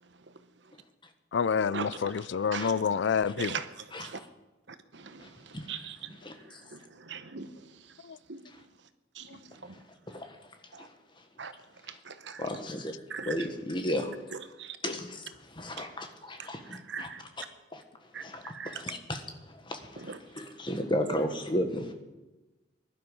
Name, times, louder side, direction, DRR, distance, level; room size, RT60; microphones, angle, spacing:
voice 1, 0.0-0.4 0.6-0.7 1.7-2.7 3.4-4.2 4.7-8.4 9.1-9.8 10.7-10.9 11.4-11.5 11.8-12.5 13.1-13.5 14.3-14.8 15.8-15.9 16.4-17.2 18.1-18.8 20.0-20.2, right 5 dB, 65° right, 1.0 m, -41 dB
voice 2, 1.3-3.5 8.0-8.2, left 6 dB, 65° left, 0.4 m, -28 dB
voice 3, 12.4-13.0 13.2-14.1 14.8-15.3 15.5-17.1 17.7-17.8 18.2-21.9, left 1 dB, 25° left, 1.4 m, -34 dB
19.5 x 11.5 x 5.5 m
head